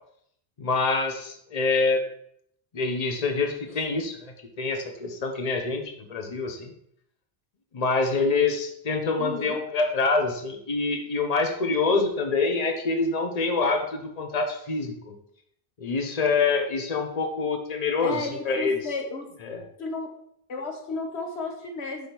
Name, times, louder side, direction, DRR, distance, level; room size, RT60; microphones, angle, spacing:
voice 1, 0.6-2.0 2.7-6.7 7.7-15.2 15.8-18.8 19.4-19.6, left 4 dB, 40° left, 4 dB, 1.0 m, -26 dB
voice 2, 9.2-9.6 18.0-19.3 19.8-20.1 20.5-22.1, left 3 dB, 90° left, 3 dB, 1.5 m, -33 dB
5.0 x 5.0 x 6.0 m, 0.70 s
omnidirectional pair, 1.1 m